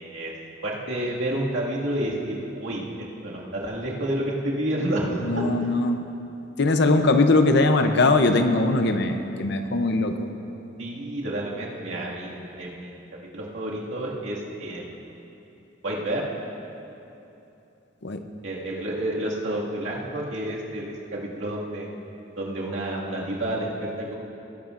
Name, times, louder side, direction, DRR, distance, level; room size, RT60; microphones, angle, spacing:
voice 1, 0.6-2.8 3.2-5.2 10.8-12.9 13.3-15.0 15.8-16.3 18.4-21.9 22.4-24.2, right 1 dB, 75° right, -5 dB, 2.1 m, -29 dB
voice 2, 5.2-6.0 6.6-10.3 18.0-18.2, left 2 dB, 60° left, 7 dB, 0.7 m, -21 dB
19.0 x 11.0 x 2.6 m, 2.9 s
head